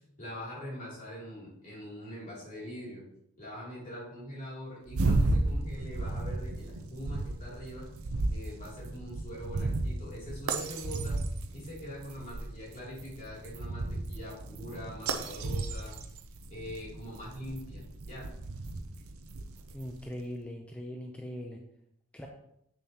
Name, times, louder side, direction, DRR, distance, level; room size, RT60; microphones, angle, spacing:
voice 1, 0.2-3.0 3.4-7.9 8.3-11.2 11.5-15.9 16.5-18.3, equal, 35° left, -5 dB, 2.9 m, -43 dB
sound 1, 4.9-20.0, right 2 dB, 70° right, 0.6 m, -34 dB
voice 2, 19.7-21.6 22.1-22.3, equal, 5° left, 1 dB, 0.5 m, -40 dB
7.4 x 6.9 x 2.9 m, 0.75 s
head